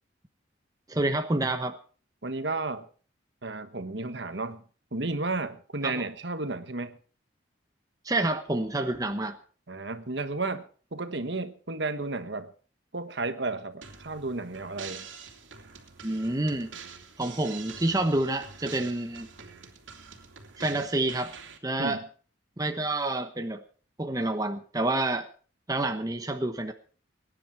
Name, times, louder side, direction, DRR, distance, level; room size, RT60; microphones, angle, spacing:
voice 1, 0.9-1.8 5.8-6.0 8.0-9.4 16.0-16.7 17.2-19.3 20.6-21.3 21.6-22.0 22.6-23.6 24.0-25.3 25.7-26.7, right 2 dB, 20° right, 6 dB, 1.0 m, -28 dB
voice 2, 2.2-2.8 3.4-4.6 4.9-7.0 9.7-10.6 10.9-12.5 12.9-15.0 21.8-22.0, right 3 dB, 65° right, 10 dB, 1.4 m, -33 dB
sound 1, 13.8-21.6, right 6 dB, 90° right, 2.7 m, -46 dB
22.5 x 10.5 x 4.5 m, 0.42 s
head